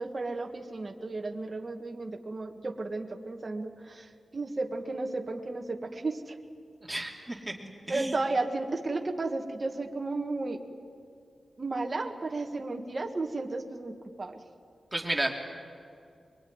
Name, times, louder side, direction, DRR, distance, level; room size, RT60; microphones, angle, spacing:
voice 1, 0.0-6.4 7.9-10.6 11.6-14.4, right 3 dB, 30° right, 2 dB, 1.7 m, -33 dB
voice 2, 6.9-7.5 7.9-8.2 14.9-15.3, right 1 dB, 10° right, -1 dB, 3.0 m, -32 dB
23.5 x 23.5 x 9.7 m, 2.3 s
wide cardioid pair, 165°, 0 cm